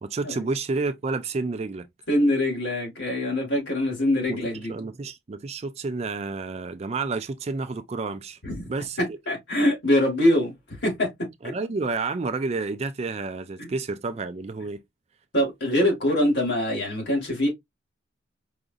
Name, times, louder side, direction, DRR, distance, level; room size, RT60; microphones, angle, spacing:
voice 1, 0.0-1.9 3.9-8.4 8.7-9.2 11.4-14.8, right 3 dB, 30° right, 0.3 m, -30 dB
voice 2, 2.1-4.7 8.4-8.6 9.3-10.5 10.8-11.1 13.6-13.7 15.3-17.5, left 1 dB, 55° left, 2.1 m, -23 dB
4.9 x 2.5 x 2.5 m
head